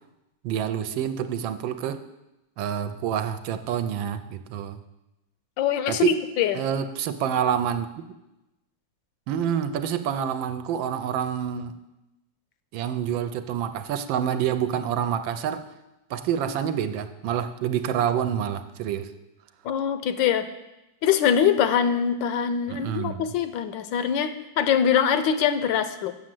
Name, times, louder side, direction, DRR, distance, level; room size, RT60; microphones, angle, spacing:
voice 1, 0.4-2.0 2.6-4.8 5.9-6.2 6.5-7.9 9.3-11.7 12.7-15.6 16.1-19.1 22.7-23.3, right 9 dB, 85° right, 10 dB, 1.4 m, -27 dB
voice 2, 5.6-6.6 19.6-20.5 21.0-26.1, left 8 dB, 80° left, 11 dB, 1.3 m, -23 dB
7.7 x 6.3 x 7.6 m, 0.96 s
omnidirectional pair, 2.1 m